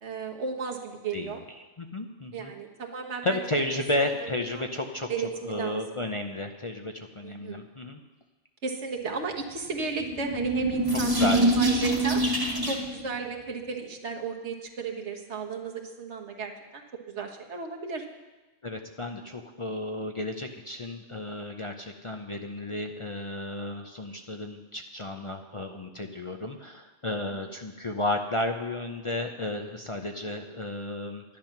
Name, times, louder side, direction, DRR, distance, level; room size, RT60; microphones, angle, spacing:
voice 1, 0.0-1.4 2.3-3.4 4.0-4.6 5.1-6.0 7.2-7.7 8.6-12.2 12.7-18.0 27.3-27.5, right 4 dB, 75° right, 1 dB, 1.6 m, -35 dB
voice 2, 1.6-2.5 3.2-5.1 5.5-8.0 11.2-11.9 18.6-31.2, left 1 dB, 35° left, 4 dB, 0.6 m, -33 dB
sound 1, 9.8-13.0, right 1 dB, 20° right, 1.5 m, -25 dB
10.5 x 10.5 x 5.9 m, 1.2 s
omnidirectional pair, 1.2 m